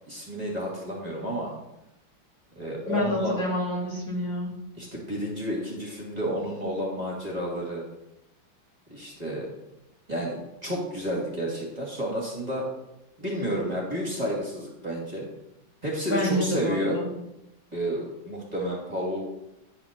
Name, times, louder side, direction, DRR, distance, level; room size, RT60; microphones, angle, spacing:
voice 1, 0.1-1.5 2.6-3.3 4.8-7.8 8.9-9.5 10.1-12.6 13.2-15.2 15.8-17.0 17.7-19.3, equal, 20° right, -4 dB, 2.5 m, -31 dB
voice 2, 2.9-4.5 16.1-17.1, left 1 dB, 65° left, -4 dB, 3.5 m, -28 dB
10.5 x 5.0 x 6.7 m, 0.87 s
omnidirectional pair, 2.2 m